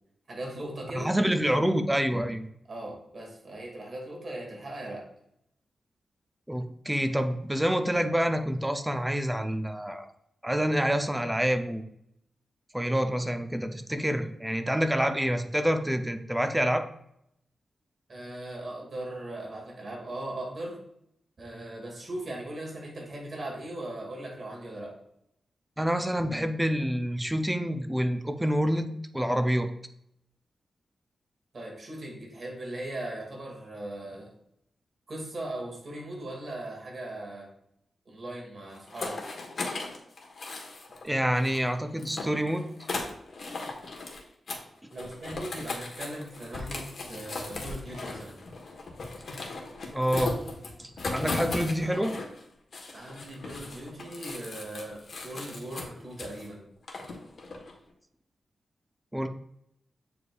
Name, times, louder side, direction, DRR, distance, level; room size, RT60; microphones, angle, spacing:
voice 1, 0.3-1.1 2.7-5.0 18.1-20.8 21.4-24.9 31.5-34.3 35.1-37.5 38.1-39.2 44.9-48.4 52.9-56.7, right 1 dB, 50° right, -2 dB, 2.0 m, -39 dB
voice 2, 0.9-2.5 6.5-10.1 10.4-11.8 12.7-16.9 25.8-29.7 41.0-42.7 49.9-50.4 50.8-52.1 59.1-59.3, equal, 10° right, 7 dB, 0.5 m, -27 dB
sound 1, 38.7-41.1 41.3-44.2 44.5-44.6 44.9-52.4 52.7-56.5 56.9-57.8, left 3 dB, 65° left, 1.2 m, -37 dB
8.3 x 4.8 x 2.3 m, 0.75 s
cardioid pair, 90°, 0 cm